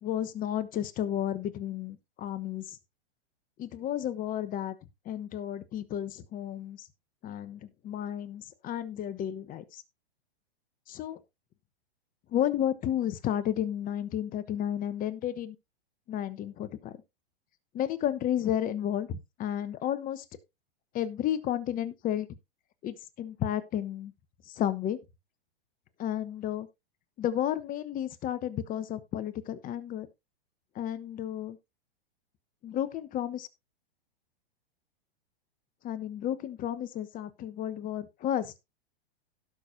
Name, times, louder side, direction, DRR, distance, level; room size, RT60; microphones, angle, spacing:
voice 1, 0.0-2.8 3.6-4.7 5.0-6.9 7.2-9.8 10.9-11.2 12.3-15.6 16.1-17.0 17.7-20.2 20.9-22.3 22.8-24.1 24.5-25.0 26.0-26.7 27.2-30.1 30.7-31.6 32.6-33.5 35.8-38.6, left 11 dB, 30° left, 1.1 m, -32 dB
17.0 x 6.2 x 2.7 m
hypercardioid pair, 120°, 30 cm